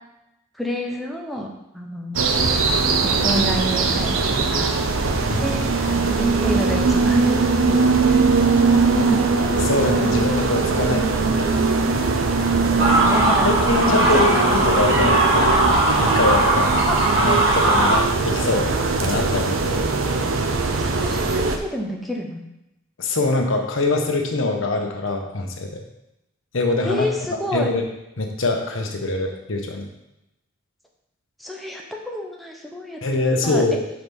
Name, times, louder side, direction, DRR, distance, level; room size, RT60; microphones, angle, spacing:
voice 1, 0.5-2.5 3.0-4.8 5.4-9.2 10.8-11.1 12.5-13.5 14.1-14.2 15.0-15.1 16.9-17.0 20.8-22.4 26.8-27.7 31.4-33.6, equal, ahead, -1 dB, 0.9 m, -29 dB
sound 1, 2.1-21.6, right 4 dB, 90° right, 0.8 m, -21 dB
voice 2, 9.6-11.5 13.4-15.5 16.0-16.7 17.2-18.7 19.0-19.8 23.0-25.8 26.5-27.1 27.5-27.8 28.2-29.9 33.0-33.9, left 2 dB, 75° left, 3 dB, 1.1 m, -23 dB
sound 2, 12.8-18.0, right 2 dB, 75° right, 2.1 m, -19 dB
6.4 x 5.0 x 5.3 m, 0.89 s
head